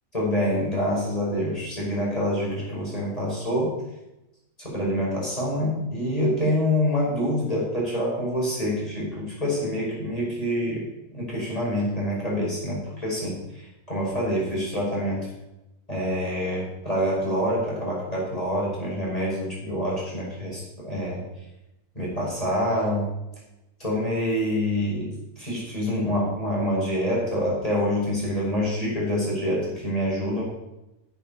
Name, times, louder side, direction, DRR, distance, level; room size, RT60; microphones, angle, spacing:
voice 1, 0.1-3.8 4.6-10.8 11.1-13.6 13.9-15.3 15.9-21.2 21.9-23.1 23.8-25.1 25.4-30.4, equal, 20° left, -5 dB, 5.8 m, -26 dB
11.5 x 8.1 x 7.0 m, 0.94 s
omnidirectional pair, 1.9 m